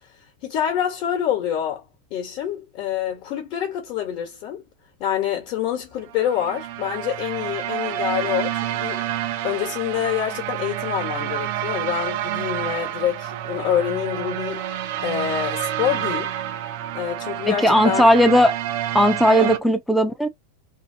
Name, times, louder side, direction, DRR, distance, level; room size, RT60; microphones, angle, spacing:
voice 1, 0.4-1.8 2.1-4.6 5.0-9.0 9.4-14.6 15.0-16.3 16.9-18.1 19.4-19.5, left 10 dB, 45° left, 1.0 m, -26 dB
sound 1, 6.1-19.6, right 11 dB, 55° right, 0.5 m, -28 dB
voice 2, 17.5-18.5 18.9-20.3, equal, ahead, 0.5 m, -17 dB
2.6 x 2.5 x 2.6 m
supercardioid pair, 150°, 0 cm